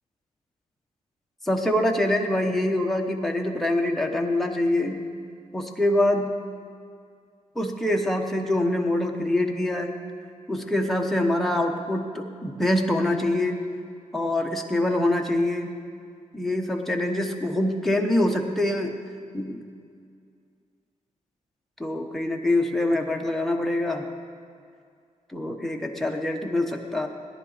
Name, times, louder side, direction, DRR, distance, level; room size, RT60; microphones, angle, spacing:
voice 1, 1.4-5.0 5.5-6.3 7.5-9.9 10.5-13.6 14.1-15.7 16.3-18.9 19.3-19.6 21.8-24.1 25.3-27.1, left 1 dB, ahead, 1 dB, 0.9 m, -25 dB
18.0 x 10.5 x 4.0 m, 2.2 s
wide cardioid pair, 150°, 13 cm